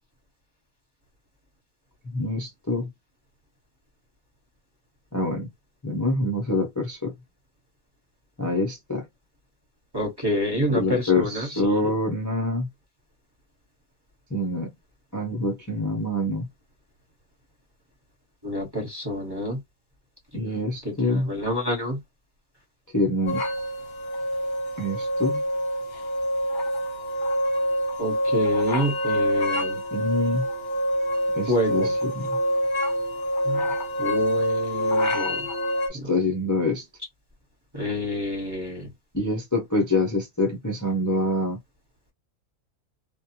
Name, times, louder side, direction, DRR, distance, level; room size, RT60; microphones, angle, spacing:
voice 1, 2.1-2.9 5.1-5.5 5.8-7.1 8.4-9.0 10.7-12.7 14.3-14.7 15.1-16.5 20.3-21.3 22.9-23.4 24.8-25.4 29.9-30.5 31.3-32.3 35.9-36.8 39.1-41.6, left 2 dB, 25° left, 0.3 m, -25 dB
voice 2, 9.9-11.7 18.4-19.6 20.8-22.0 28.0-29.8 31.5-31.9 33.5-33.6 34.0-35.4 36.0-36.1 37.7-38.9, equal, 20° right, 1.0 m, -28 dB
sound 1, 23.3-35.9, equal, 50° left, 0.7 m, -26 dB
2.4 x 2.1 x 2.8 m
omnidirectional pair, 1.4 m